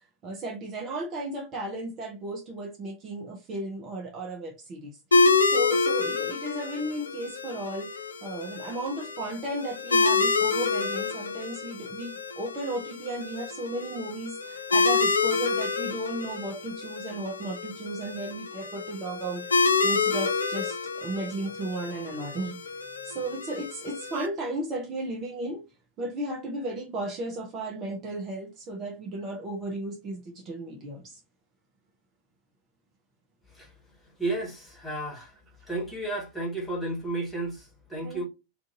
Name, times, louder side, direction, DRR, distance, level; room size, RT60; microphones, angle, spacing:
voice 1, 0.2-4.9 5.4-22.6 23.0-25.6 26.0-31.2 35.6-35.7 38.0-38.2, right 1 dB, 30° right, 0.8 m, -35 dB
sound 1, 5.1-24.3, left 4 dB, 75° left, 0.4 m, -28 dB
voice 2, 34.2-35.4 35.7-38.3, right 2 dB, 10° left, 1.4 m, -32 dB
2.6 x 2.5 x 2.6 m
figure-of-eight pair, 90°, 0 cm